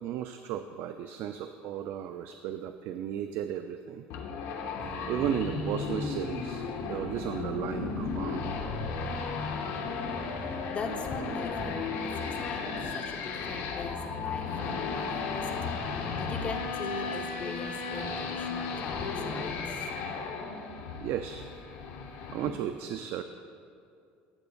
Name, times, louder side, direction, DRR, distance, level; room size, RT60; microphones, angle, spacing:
voice 1, 0.0-4.0 5.1-8.5 19.4-19.5 21.0-21.4 22.3-23.2, right 10 dB, 65° right, 8 dB, 0.3 m, -35 dB
sound 1, 4.1-22.5, left 4 dB, 75° left, 0.9 m, -35 dB
sound 2, 4.8-10.6, right 3 dB, 35° right, 1.0 m, -45 dB
voice 2, 10.5-19.8, left 3 dB, 30° left, 4 dB, 0.8 m, -41 dB
14.0 x 8.0 x 2.4 m, 2.4 s
cardioid pair, 115°, 4 cm